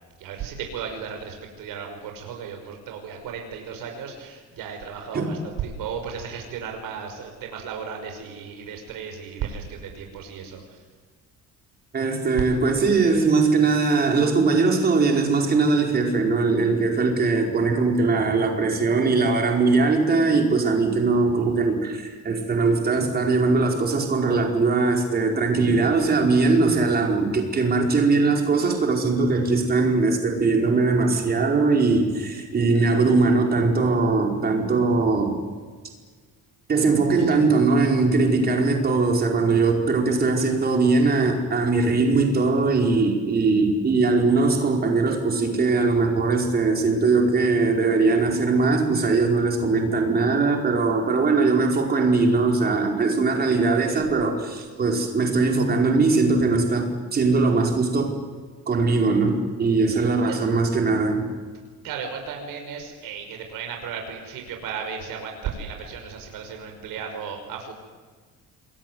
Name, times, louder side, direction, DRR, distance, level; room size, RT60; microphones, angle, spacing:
voice 1, 0.2-10.8 37.2-37.4 59.9-60.4 61.8-67.7, right 6 dB, 90° right, 3 dB, 5.7 m, -35 dB
voice 2, 11.9-35.4 36.7-58.2 58.7-61.3, right 3 dB, 30° right, 2 dB, 5.0 m, -21 dB
28.0 x 22.5 x 9.6 m, 1.5 s
cardioid pair, 175°, 33 cm